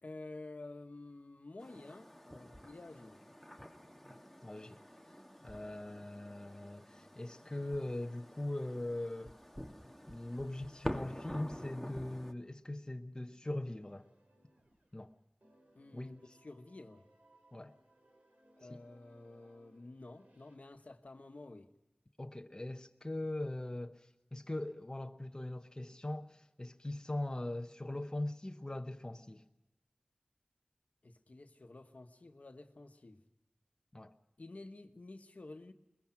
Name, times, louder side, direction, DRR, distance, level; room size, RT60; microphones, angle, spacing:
voice 1, 0.0-3.2 15.7-16.2 16.4-17.0 18.6-21.7 31.0-33.2 34.4-35.7, left 2 dB, 70° left, 1.2 m, -51 dB
sound 1, 1.6-12.3, equal, 5° left, 1.4 m, -48 dB
voice 2, 4.4-4.8 5.4-9.3 10.1-14.1 14.9-15.1 15.9-16.2 17.5-17.7 18.7-18.8 22.2-29.4 33.9-34.1, left 1 dB, 30° left, 0.9 m, -41 dB
sound 2, 13.8-15.1 15.4-20.6, right 1 dB, 75° right, 4.2 m, -67 dB
22.5 x 21.5 x 5.8 m
wide cardioid pair, 50°, 3 cm